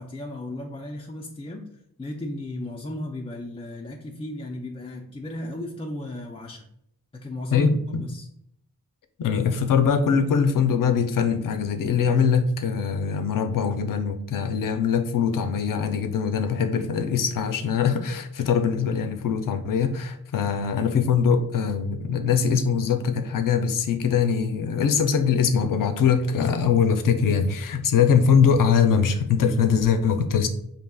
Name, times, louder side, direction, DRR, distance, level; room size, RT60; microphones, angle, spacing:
voice 1, 0.0-1.7 2.0-6.7 7.1-8.3, left 1 dB, 20° left, 0 dB, 0.3 m, -35 dB
voice 2, 7.5-8.0 9.2-30.5, left 6 dB, 70° left, 8 dB, 0.5 m, -22 dB
5.4 x 2.8 x 2.2 m, 0.73 s
wide cardioid pair, 100°, 34 cm